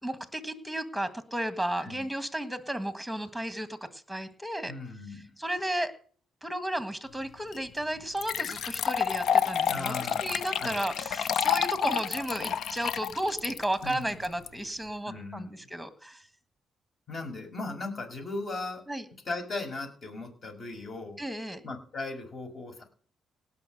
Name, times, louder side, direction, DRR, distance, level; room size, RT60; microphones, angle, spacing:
voice 1, 0.0-4.7 5.1-5.9 6.4-9.9 10.2-16.3 18.9-19.0 21.2-21.6, right 1 dB, ahead, 11 dB, 1.7 m, -33 dB
voice 2, 4.7-5.3 9.7-10.3 10.6-10.8 13.8-14.1 15.1-15.5 17.1-18.8 19.2-21.2 21.6-22.8, left 3 dB, 45° left, 4 dB, 6.1 m, -37 dB
sound 1, 7.5-7.6 8.2-14.5, left 8 dB, 70° left, 0.7 m, -29 dB
18.0 x 6.1 x 6.5 m, 0.43 s
cardioid pair, 90°, 0 cm